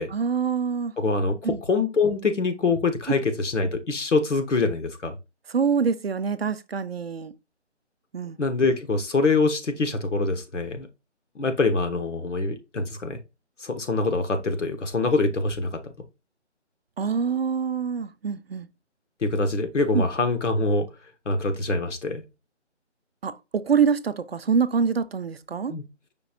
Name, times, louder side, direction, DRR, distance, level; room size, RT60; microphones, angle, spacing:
voice 1, 0.1-0.9 1.4-1.6 5.5-7.3 8.1-8.4 17.0-18.7 19.9-20.1 23.2-25.7, right 6 dB, 55° right, 0.5 m, -25 dB
voice 2, 1.0-5.1 8.4-10.9 11.3-13.2 13.6-15.9 19.2-20.9 21.3-22.2 25.7-25.8, left 3 dB, 90° left, 1.1 m, -24 dB
5.2 x 2.4 x 4.1 m
figure-of-eight pair, 170°, 36 cm